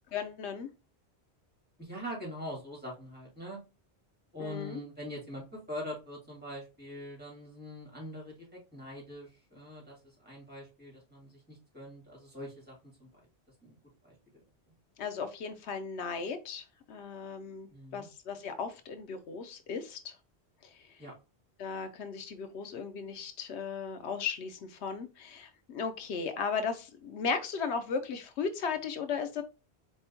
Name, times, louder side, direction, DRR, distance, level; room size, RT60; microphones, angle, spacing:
voice 1, 0.1-0.7 4.4-4.8 15.0-20.2 20.6-21.0 21.6-29.4, left 5 dB, 85° left, 8 dB, 1.0 m, -36 dB
voice 2, 1.8-3.6 4.3-12.7 13.0-13.1 13.6-13.8 14.0-14.1 17.7-18.1 21.0-21.1, equal, 10° right, -3 dB, 2.6 m, -43 dB
4.3 x 3.5 x 2.7 m, 0.29 s
omnidirectional pair, 1.1 m